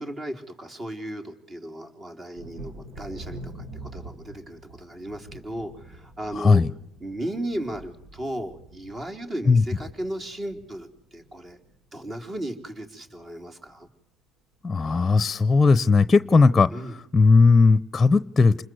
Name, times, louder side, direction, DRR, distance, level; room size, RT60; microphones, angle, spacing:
voice 1, 0.0-6.6 7.0-11.6 11.9-13.9 16.7-16.9, right 1 dB, 30° right, 5 dB, 4.1 m, -35 dB
Thunder, 2.4-11.8 12.0-12.8 13.2-13.3 13.7-13.9, right 1 dB, 70° right, 3.8 m, -45 dB
voice 2, 6.3-6.7 9.5-9.6 14.6-18.6, left 4 dB, 20° left, 16 dB, 0.9 m, -18 dB
28.5 x 21.0 x 8.0 m, 0.78 s
cardioid pair, 100°, 0 cm